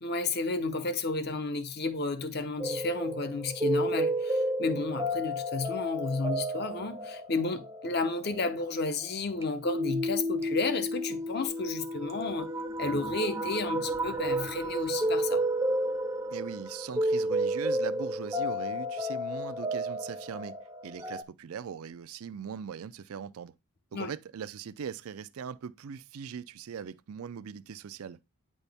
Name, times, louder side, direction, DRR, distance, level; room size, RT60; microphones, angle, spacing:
voice 1, 0.0-12.5 12.8-15.4 23.9-24.1, left 3 dB, 50° left, 0.7 m, -32 dB
sound 1, 2.6-21.2, right 1 dB, 15° right, 0.5 m, -32 dB
voice 2, 16.3-20.6 20.8-23.5 23.9-28.2, right 7 dB, 85° right, 0.4 m, -40 dB
8.9 x 4.2 x 3.4 m
head